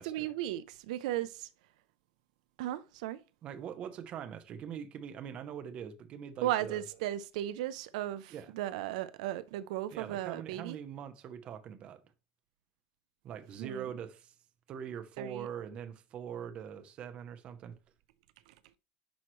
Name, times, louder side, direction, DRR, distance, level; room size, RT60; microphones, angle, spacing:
voice 1, 0.0-1.5 2.6-3.2 6.4-10.8 13.6-13.8 15.2-15.5, right 13 dB, 70° right, 0.5 m, -36 dB
voice 2, 3.4-6.8 8.3-8.5 9.9-12.0 13.2-14.3 14.7-17.8, right 8 dB, 30° right, 0.7 m, -43 dB
10.5 x 4.6 x 3.1 m
cardioid pair, 180°, 4 cm